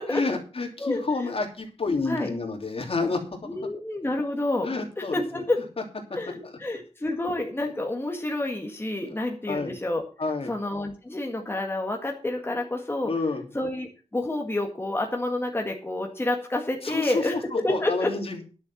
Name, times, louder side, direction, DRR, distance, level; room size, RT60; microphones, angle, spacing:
voice 1, 0.1-3.6 4.6-5.4 6.4-6.5 9.5-9.8 10.2-10.5 13.0-13.5 16.8-18.4, left 3 dB, 55° left, 2 dB, 3.0 m, -29 dB
voice 2, 0.8-1.3 2.1-2.3 3.5-4.7 5.0-5.6 6.1-10.0 10.5-13.1 13.5-18.1, left 2 dB, 20° left, 1 dB, 1.9 m, -29 dB
11.0 x 7.0 x 7.2 m, 0.36 s
wide cardioid pair, 110°, 12 cm